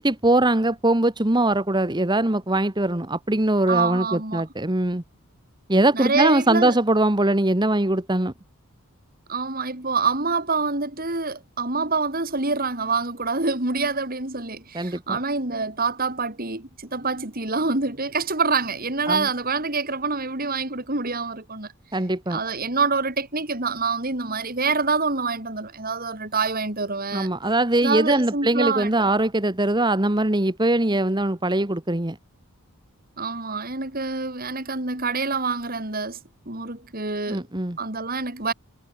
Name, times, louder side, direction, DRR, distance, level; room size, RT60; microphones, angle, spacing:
voice 1, 0.0-5.0 5.7-8.3 14.7-15.2 19.1-19.3 21.9-22.4 27.1-32.2 37.3-37.8, right 1 dB, 20° right, 1.3 m, -22 dB
voice 2, 3.7-4.4 5.9-6.8 9.3-21.7 22.3-27.3 27.8-28.9 33.2-36.2 36.5-37.4 37.8-38.5, right 4 dB, 40° right, 3.5 m, -26 dB
head